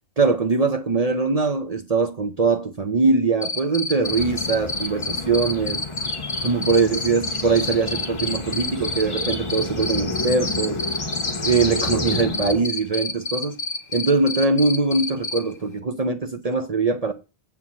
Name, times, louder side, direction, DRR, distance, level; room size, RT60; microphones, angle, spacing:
voice 1, 0.2-5.8 6.4-10.8 11.4-13.6 13.9-17.1, right 4 dB, 40° right, 0.8 m, -22 dB
Cricket, 3.4-15.4, left 3 dB, 60° left, 1.4 m, -27 dB
sound 1, 4.0-12.6, left 3 dB, 30° left, 1.0 m, -30 dB
7.8 x 4.7 x 7.3 m
omnidirectional pair, 1.1 m